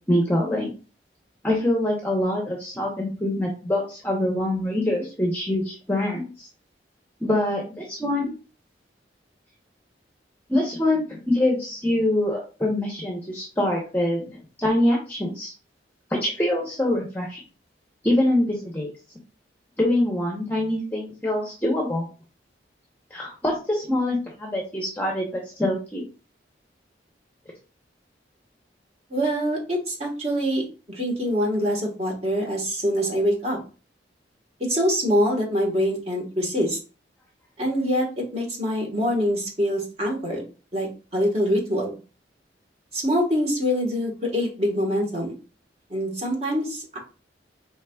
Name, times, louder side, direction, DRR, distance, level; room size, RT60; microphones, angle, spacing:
voice 1, 0.1-0.7 1.4-6.5 7.2-8.3 10.5-14.3 14.6-15.5 16.1-17.4 18.0-18.9 19.8-22.1 23.1-26.0, left 1 dB, 10° left, -2 dB, 0.7 m, -24 dB
voice 2, 29.1-33.6 34.6-36.8 37.6-40.5 40.7-40.9 41.1-41.9 42.9-45.3 45.9-47.0, equal, 35° right, -1 dB, 1.3 m, -24 dB
4.6 x 3.3 x 2.3 m, 0.34 s
head